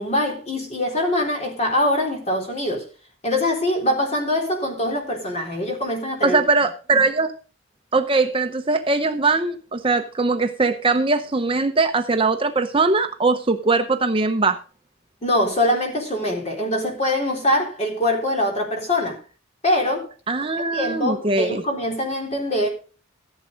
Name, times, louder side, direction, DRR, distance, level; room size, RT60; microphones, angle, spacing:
voice 1, 0.0-2.9 3.2-6.4 6.9-7.0 15.2-19.2 19.6-20.1 20.7-22.7, left 1 dB, 30° left, 3.7 m, -23 dB
voice 2, 6.2-7.3 7.9-14.6 20.3-21.6, right 3 dB, 25° right, 0.8 m, -21 dB
14.5 x 7.5 x 5.2 m
head